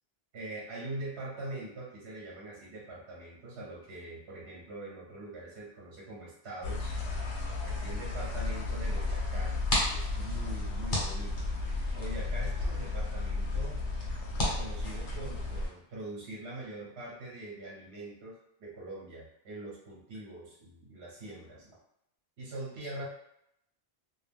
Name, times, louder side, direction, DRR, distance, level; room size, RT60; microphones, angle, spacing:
voice 1, 0.3-7.0 7.6-9.6 9.9-11.5 11.9-13.8 14.3-21.8 22.4-23.1, right 2 dB, 65° right, -5 dB, 0.9 m, -43 dB
sound 1, 6.6-15.7, left 3 dB, 70° left, 0.8 m, -33 dB
sound 2, 9.4-15.7, left 1 dB, 45° left, 1.1 m, -37 dB
2.3 x 2.3 x 3.3 m, 0.79 s
omnidirectional pair, 1.2 m